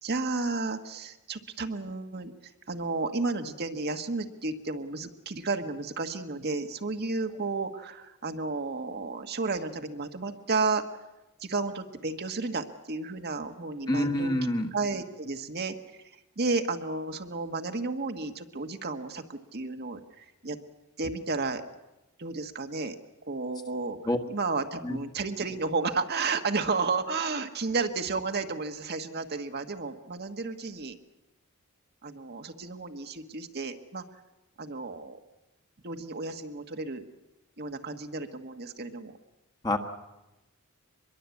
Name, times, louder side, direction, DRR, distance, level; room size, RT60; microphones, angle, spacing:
voice 1, 0.0-2.3 2.7-10.8 11.4-14.3 14.7-15.7 16.4-20.6 21.0-21.6 22.2-22.9 23.2-24.0 24.3-31.0 32.0-34.0 34.6-35.2 35.8-37.0 37.6-39.1, right 3 dB, 45° right, 6 dB, 1.4 m, -32 dB
voice 2, 13.9-14.7 24.0-24.2 24.8-25.0 39.6-39.8, left 1 dB, 20° left, 5 dB, 1.5 m, -26 dB
24.0 x 22.0 x 8.3 m, 0.97 s
head